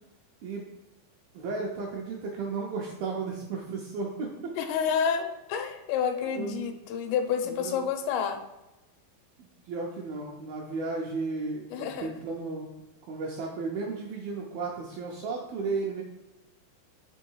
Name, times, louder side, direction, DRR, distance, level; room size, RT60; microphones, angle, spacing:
voice 1, 1.3-4.3 6.3-6.7 7.4-7.8 9.4-12.7 13.1-16.0, right 4 dB, 75° right, -1 dB, 2.2 m, -34 dB
voice 2, 4.6-8.4 11.7-12.1, left 7 dB, 85° left, 6 dB, 2.7 m, -29 dB
6.4 x 3.7 x 4.6 m, 0.97 s
omnidirectional pair, 5.0 m